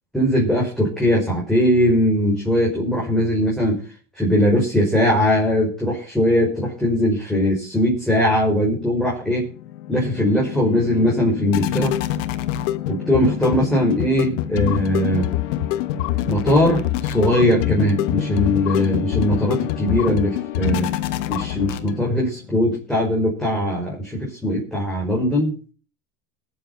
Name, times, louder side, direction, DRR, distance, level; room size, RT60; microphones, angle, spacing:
voice 1, 0.1-3.8 4.1-9.5 9.9-11.9 12.9-15.3 16.2-20.9 21.3-25.6, equal, ahead, -4 dB, 5.9 m, -20 dB
sound 1, 9.4-22.2, left 13 dB, 80° left, 1.3 m, -25 dB
20.0 x 7.7 x 5.7 m, 0.37 s
supercardioid pair, 110°, 37 cm